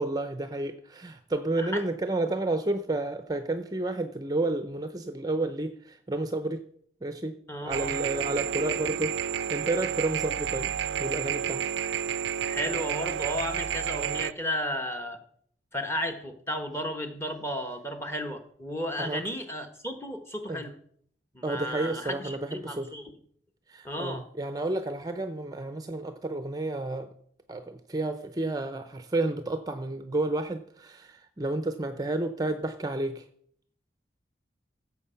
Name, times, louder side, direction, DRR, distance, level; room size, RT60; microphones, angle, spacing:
voice 1, 0.0-6.6 7.0-7.4 7.6-10.7 11.0-11.6 19.0-19.2 20.5-20.6 21.4-22.9 23.7-27.1 27.5-33.3, right 2 dB, 20° right, 9 dB, 0.5 m, -31 dB
voice 2, 7.5-7.9 11.8-12.0 12.4-15.2 15.7-20.7 21.3-23.1 23.8-24.2, equal, 15° left, 6 dB, 1.2 m, -34 dB
sound 1, 7.7-14.3, right 8 dB, 80° right, 0.4 m, -30 dB
15.5 x 7.1 x 5.7 m, 0.64 s
head